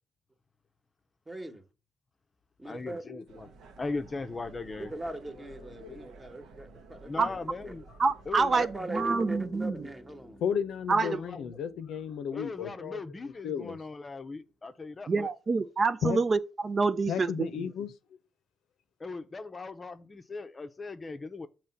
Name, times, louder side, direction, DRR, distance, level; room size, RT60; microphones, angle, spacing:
voice 1, 1.3-1.6 2.6-3.0 4.8-7.7 8.6-10.4, right 1 dB, 20° right, 1.1 m, -40 dB
voice 2, 2.6-3.5 3.8-4.9 7.0-7.8 8.3-8.7 11.0-11.6 12.3-15.3 19.0-21.5, left 3 dB, 30° left, 0.6 m, -38 dB
sound 1, 3.3-8.8, right 3 dB, 80° right, 0.9 m, -52 dB
voice 3, 5.6-6.0 10.4-13.8 16.0-16.2 17.1-18.2, left 7 dB, 80° left, 0.7 m, -34 dB
voice 4, 8.0-9.7 10.9-11.2 15.1-17.3, right 4 dB, 40° right, 0.4 m, -27 dB
sound 2, 8.9-12.4, left 1 dB, ahead, 0.8 m, -47 dB
6.9 x 3.1 x 5.8 m
cardioid pair, 90°, 0 cm